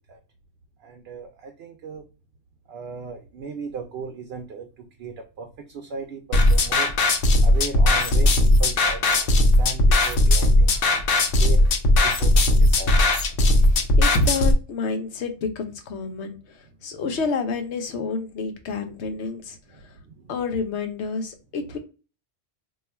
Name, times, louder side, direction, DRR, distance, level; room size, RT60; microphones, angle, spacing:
voice 1, 0.8-2.1 2.7-6.9 7.4-11.0 11.4-11.7 12.0-13.0 19.7-20.3, right 5 dB, 70° right, 5 dB, 0.8 m, -37 dB
sound 1, 6.3-14.5, left 1 dB, 65° left, 0.8 m, -18 dB
voice 2, 13.7-19.8 20.3-21.8, left 5 dB, 85° left, 6 dB, 1.0 m, -30 dB
2.5 x 2.3 x 4.1 m, 0.32 s
omnidirectional pair, 1.1 m